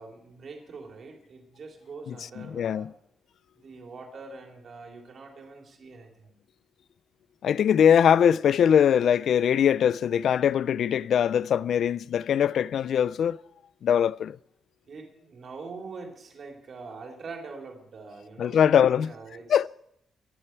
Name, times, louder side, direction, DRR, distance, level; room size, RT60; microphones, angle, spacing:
voice 1, 0.0-2.9 3.6-6.4 14.8-19.7, right 4 dB, 45° right, 3.3 m, -44 dB
voice 2, 2.1-2.9 7.4-13.4 13.8-14.4 18.4-19.1 19.5-19.7, left 8 dB, 60° left, 0.4 m, -22 dB
23.0 x 10.0 x 4.5 m
wide cardioid pair, 165°, 0 cm